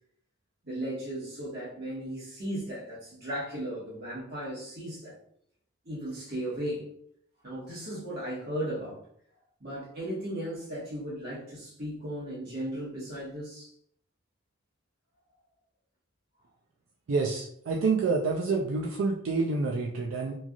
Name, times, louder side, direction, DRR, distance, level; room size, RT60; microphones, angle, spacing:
voice 1, 0.6-5.1 5.8-6.9 7.4-9.0 9.6-13.7, right 1 dB, 50° right, -6 dB, 1.2 m, -36 dB
voice 2, 17.1-20.3, right 4 dB, 70° right, -1 dB, 0.4 m, -28 dB
3.1 x 2.5 x 2.3 m, 0.66 s
head